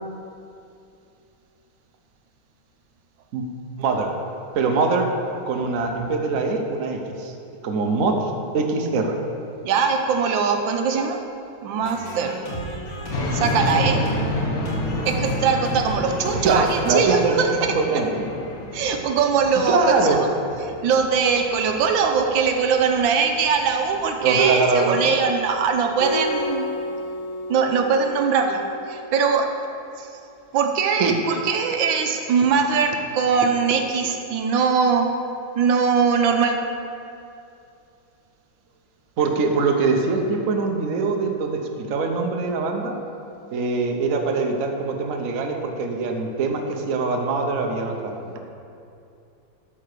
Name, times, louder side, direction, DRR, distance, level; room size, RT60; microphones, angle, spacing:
voice 1, 3.8-4.2 4.5-5.1 5.5-7.3 7.6-9.2 16.4-18.3 19.5-20.2 24.2-25.2 31.0-31.1 39.2-43.0 43.5-48.4, right 4 dB, 55° right, 2 dB, 1.1 m, -23 dB
voice 2, 9.6-11.2 11.6-12.4 13.3-14.0 15.0-17.7 18.7-20.3 20.8-26.6 27.5-29.5 30.0-30.1 30.5-35.1 35.6-36.6, right 5 dB, 80° right, 4 dB, 1.5 m, -21 dB
sound 1, 11.8-17.2, right 1 dB, 80° left, 2.7 m, -33 dB
sound 2, 13.1-26.1, left 1 dB, 55° left, 1.4 m, -31 dB
Acoustic guitar, 26.0-29.3, left 1 dB, 35° left, 0.9 m, -31 dB
12.5 x 4.6 x 6.6 m, 2.6 s
omnidirectional pair, 2.1 m